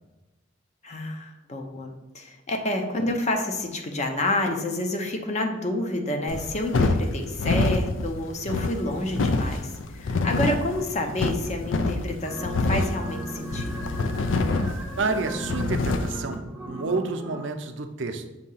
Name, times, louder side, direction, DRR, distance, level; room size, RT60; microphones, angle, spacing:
voice 1, 0.8-13.8, left 1 dB, 35° left, 4 dB, 0.7 m, -29 dB
sound 1, 6.3-16.2, left 3 dB, 75° left, 0.5 m, -26 dB
sound 2, 12.2-17.4, right 1 dB, 5° right, 0.6 m, -37 dB
voice 2, 14.8-18.3, right 3 dB, 70° right, 7 dB, 0.5 m, -30 dB
6.3 x 2.8 x 5.5 m, 1.1 s
head